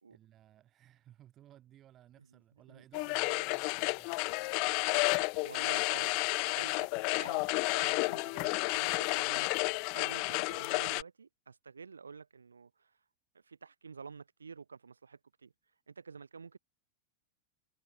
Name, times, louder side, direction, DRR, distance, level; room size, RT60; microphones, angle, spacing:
voice 1, 0.1-4.1, right 12 dB, 30° right, 6.3 m, -58 dB
sound 1, 2.9-11.0, left 35 dB, 45° left, 1.2 m, -31 dB
voice 2, 4.2-4.6 5.4-12.9 13.5-15.5 15.9-16.6, right 5 dB, 75° right, 1.5 m, -50 dB
figure-of-eight pair, 90°, 0 cm